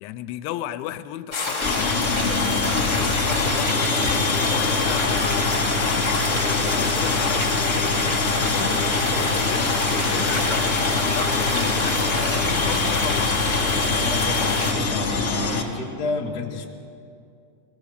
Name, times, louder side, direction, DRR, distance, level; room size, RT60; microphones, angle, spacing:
voice 1, 0.0-4.0 4.3-9.7 10.0-13.4, left 13 dB, 85° left, 11 dB, 2.9 m, -35 dB
sound 1, 1.3-14.7, left 2 dB, 20° left, 0.7 m, -26 dB
sound 2, 1.6-15.6, left 4 dB, 60° left, 0.6 m, -24 dB
voice 2, 13.9-16.6, left 3 dB, 40° left, -3 dB, 1.3 m, -31 dB
24.5 x 18.5 x 6.5 m, 2.5 s
omnidirectional pair, 5.4 m